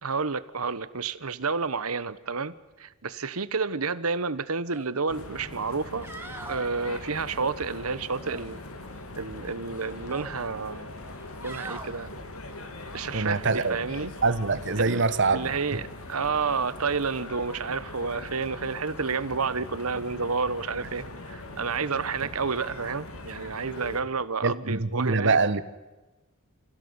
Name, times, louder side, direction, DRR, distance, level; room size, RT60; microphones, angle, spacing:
voice 1, 0.0-6.1 6.5-8.6 9.2-10.9 11.4-12.1 12.9-14.1 14.8-15.0 15.3-25.4, right 4 dB, 85° right, 1.2 m, -30 dB
sound 1, 4.7-4.9 5.3-5.4 5.9-6.7 8.1-9.0 9.4-10.3 11.0-11.9 13.6-13.8, right 2 dB, 10° right, 2.7 m, -43 dB
sound 2, 5.1-24.0, left 2 dB, 80° left, 3.1 m, -41 dB
voice 2, 13.1-13.8 14.2-15.5 24.4-25.6, right 3 dB, 60° right, 1.3 m, -24 dB
28.0 x 16.5 x 9.7 m
head